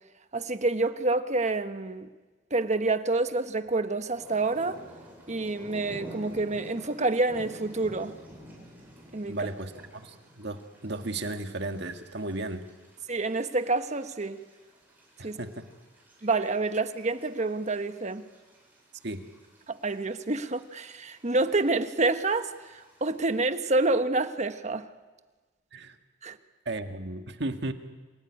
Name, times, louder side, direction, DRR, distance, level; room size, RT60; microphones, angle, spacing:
voice 1, 0.3-2.1 2.5-4.8 5.3-8.2 9.1-9.4 13.1-14.4 15.2-15.4 16.2-18.3 19.7-24.9 26.2-26.4, right 3 dB, 40° right, 1.2 m, -28 dB
sound 1, 4.1-23.3, equal, 10° right, 8.0 m, -51 dB
voice 2, 9.3-12.6 15.2-15.7 19.0-19.2 25.7-26.0 26.7-27.7, right 2 dB, 65° right, 1.8 m, -35 dB
27.5 x 18.0 x 9.9 m
head